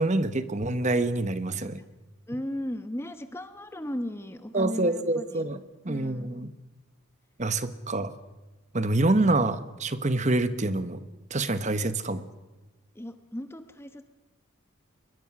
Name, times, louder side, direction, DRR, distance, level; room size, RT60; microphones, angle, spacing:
voice 1, 0.0-1.8 4.5-5.6 5.8-6.5 7.4-8.1 8.7-11.0 11.3-12.2, right 2 dB, 35° right, 12 dB, 1.0 m, -26 dB
voice 2, 2.3-5.5 5.8-6.3 12.9-14.1, left 1 dB, 10° left, 9 dB, 1.0 m, -36 dB
23.5 x 21.0 x 6.1 m, 1.1 s
head